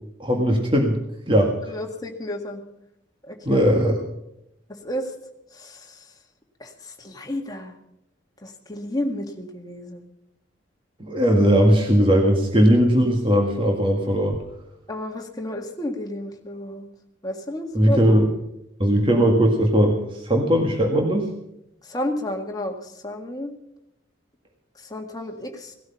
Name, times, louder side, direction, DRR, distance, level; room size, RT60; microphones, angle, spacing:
voice 1, 0.2-1.0 1.3-1.7 3.5-4.0 11.0-14.4 17.7-18.3 18.8-21.3, equal, 25° right, 1 dB, 1.8 m, -19 dB
voice 2, 1.7-2.6 3.2-3.9 4.7-5.1 5.5-6.1 6.6-7.7 8.4-10.0 14.9-16.9 17.2-18.2 21.8-23.5 24.8-25.7, left 1 dB, 20° left, 2 dB, 1.9 m, -32 dB
18.0 x 13.0 x 5.7 m, 0.81 s
head